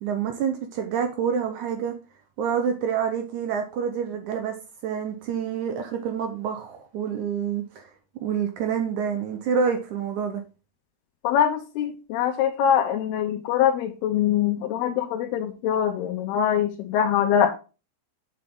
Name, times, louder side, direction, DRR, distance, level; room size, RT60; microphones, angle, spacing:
voice 1, 0.0-1.9 2.4-4.5 4.8-7.9 8.2-10.4, right 7 dB, 75° right, 5 dB, 1.8 m, -27 dB
voice 2, 11.2-17.5, left 9 dB, 90° left, 2 dB, 2.9 m, -23 dB
7.6 x 6.9 x 3.7 m, 0.33 s
omnidirectional pair, 4.4 m